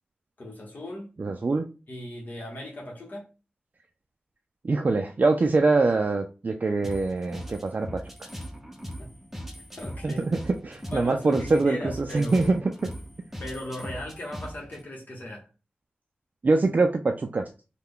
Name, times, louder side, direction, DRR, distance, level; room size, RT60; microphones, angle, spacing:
voice 1, 0.4-1.1 1.9-3.3 9.0-9.1 9.8-10.2 10.9-12.6 13.4-15.5, left 1 dB, 55° left, 1.0 m, -37 dB
voice 2, 1.2-1.7 4.6-8.3 10.0-12.6 16.4-17.5, right 3 dB, 50° right, 0.4 m, -24 dB
sound 1, 6.8-14.8, equal, 5° right, 0.7 m, -40 dB
3.3 x 2.2 x 3.6 m
cardioid pair, 45°, 4 cm